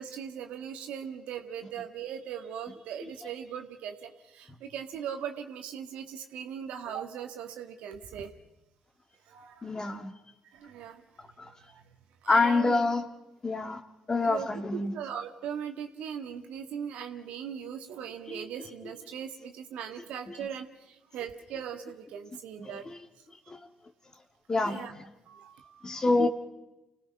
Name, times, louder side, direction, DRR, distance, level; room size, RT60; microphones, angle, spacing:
voice 1, 0.0-8.3 9.3-10.1 10.5-11.0 11.4-11.8 12.2-12.8 14.2-22.9 24.6-24.9 25.3-26.0, right 8 dB, 65° right, 5 dB, 1.8 m, -39 dB
voice 2, 9.6-10.1 11.4-11.5 12.3-13.0 13.4-13.8 14.1-14.9 18.3-18.4 20.3-20.4 22.6-23.0 23.5-23.6 24.5-25.0 25.8-26.3, left 3 dB, 30° left, 6 dB, 2.2 m, -27 dB
28.5 x 17.5 x 5.6 m, 0.95 s
hypercardioid pair, 50°, 2 cm